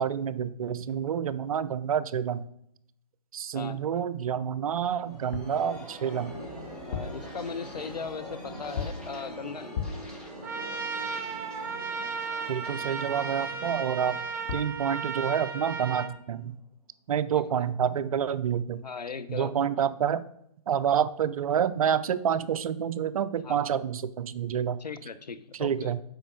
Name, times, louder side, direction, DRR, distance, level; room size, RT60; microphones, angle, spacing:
voice 1, 0.0-2.5 3.3-6.4 12.5-14.2 14.5-16.6 17.1-18.8 19.3-20.2 20.7-24.8 25.6-26.0, right 8 dB, 60° right, 14 dB, 0.6 m, -28 dB
sound 1, 4.6-16.1, equal, 5° left, 1.9 m, -44 dB
sound 2, 5.3-5.6 6.7-7.3 8.8-9.1 9.7-10.2 14.2-14.3 14.5-14.8, left 6 dB, 45° left, 0.8 m, -35 dB
voice 2, 6.9-9.9 17.3-17.7 18.8-19.7 23.4-23.7 24.8-25.9, left 5 dB, 85° left, 11 dB, 0.8 m, -38 dB
Trumpet, 10.4-16.1, right 5 dB, 10° right, 0.6 m, -34 dB
7.8 x 5.2 x 4.7 m, 0.74 s
figure-of-eight pair, 130°, 20 cm